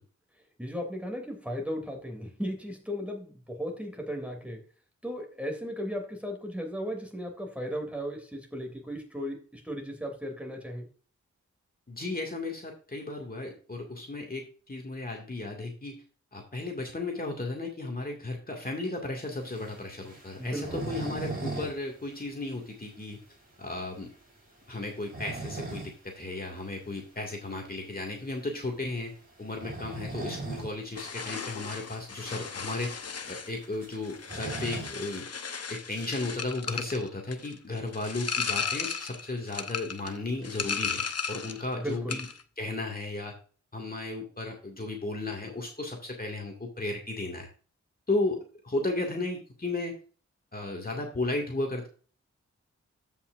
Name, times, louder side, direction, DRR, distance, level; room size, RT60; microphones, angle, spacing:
voice 1, 0.6-4.6 5.0-10.9 20.4-21.0 41.7-42.2, equal, 5° right, 2 dB, 2.9 m, -36 dB
voice 2, 11.9-16.0 16.3-23.2 23.6-24.1 24.7-29.1 29.4-32.9 33.3-35.3 35.7-42.3 42.6-43.3 43.7-47.5 48.1-50.0 50.5-51.9, left 2 dB, 30° left, 0 dB, 2.1 m, -34 dB
sound 1, 19.4-21.8 22.0-22.1 22.5-22.6 23.1-23.2 24.8-26.0 26.4-26.5 28.0-28.3 29.4-30.7 31.1-31.2 31.4-31.5 32.3-32.4 32.6-35.2, right 3 dB, 30° right, 4.6 m, -38 dB
sound 2, 30.9-41.7 41.9-42.4, left 6 dB, 55° left, 0.8 m, -35 dB
15.0 x 5.7 x 2.5 m, 0.38 s
wide cardioid pair, 105°, 29 cm